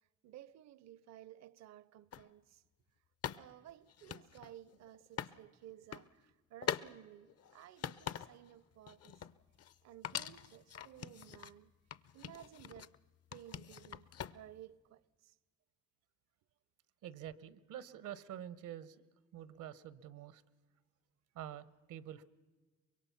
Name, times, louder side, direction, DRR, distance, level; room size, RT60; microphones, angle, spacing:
voice 1, 0.2-2.6 3.3-9.2 9.8-11.7 12.1-12.9 13.3-14.1 14.3-15.4, right 12 dB, 65° right, 0.6 m, -56 dB
sound 1, 2.1-2.3 3.2-5.4 5.7-6.1 6.6-6.9 7.3-8.5 8.9-9.8 10.0-11.6 11.9-13.0 13.3-14.6, left 9 dB, 55° left, 0.7 m, -44 dB
voice 2, 17.0-19.0 19.3-20.4 21.3-22.2, right 11 dB, 85° right, 0.9 m, -47 dB
24.5 x 22.0 x 5.7 m
cardioid pair, 90°, 30 cm